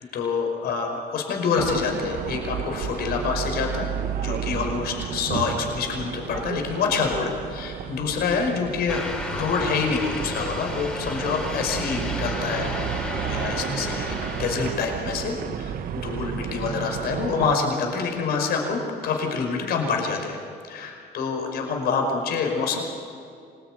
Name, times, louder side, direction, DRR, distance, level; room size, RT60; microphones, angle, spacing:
voice 1, 0.1-9.0 9.3-20.4 20.6-22.8, left 5 dB, 70° left, 3 dB, 5.3 m, -27 dB
sound 1, 1.6-17.6, right 8 dB, 60° right, 1.2 m, -32 dB
sound 2, 8.9-14.8, left 1 dB, 5° left, 4.3 m, -33 dB
25.5 x 20.5 x 9.2 m, 2.4 s
cardioid pair, 110°, 17 cm